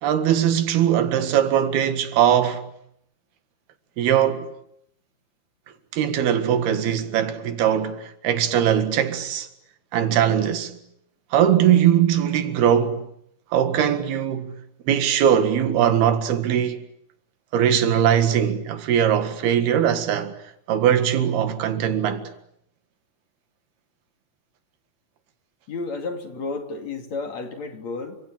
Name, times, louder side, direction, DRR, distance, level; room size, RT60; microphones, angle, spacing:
voice 1, 0.0-2.7 4.0-4.5 5.9-9.5 9.9-10.7 11.3-13.1 13.5-14.5 14.9-16.8 17.5-20.3 20.7-22.3, right 9 dB, 85° right, 3.8 m, -20 dB
voice 2, 25.7-28.2, left 3 dB, 50° left, 3.7 m, -32 dB
30.0 x 26.0 x 7.6 m
omnidirectional pair, 4.4 m